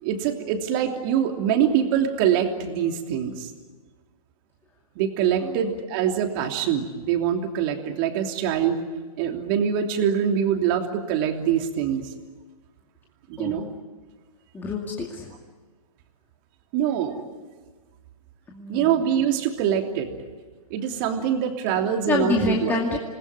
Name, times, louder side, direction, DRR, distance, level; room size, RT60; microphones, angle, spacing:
voice 1, 0.0-3.5 4.9-8.8 9.2-12.1 13.3-13.7 16.7-17.2 18.7-20.1 20.7-22.8, right 9 dB, 35° right, 4 dB, 3.0 m, -24 dB
voice 2, 14.5-15.3 18.5-19.1 22.1-23.0, left 3 dB, 10° left, -2 dB, 2.4 m, -27 dB
27.5 x 20.0 x 9.6 m, 1.4 s
hypercardioid pair, 135°, 19 cm